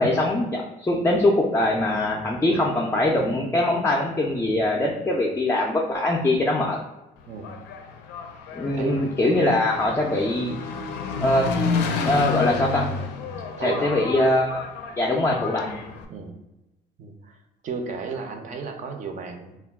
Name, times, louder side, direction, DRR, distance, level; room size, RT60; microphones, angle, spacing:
voice 1, 0.0-6.8 8.5-10.6 11.2-11.5 12.0-13.0 13.6-14.7 15.0-15.7, left 1 dB, 15° left, -2 dB, 0.3 m, -22 dB
Engine, 7.2-16.1, left 5 dB, 85° left, 0.4 m, -30 dB
voice 2, 7.3-7.6 8.7-9.1 13.6-14.1 16.1-16.4 17.0-17.4 17.6-19.6, right 5 dB, 45° right, 4 dB, 0.5 m, -34 dB
2.2 x 2.1 x 3.4 m, 0.95 s
cardioid pair, 110°, 17 cm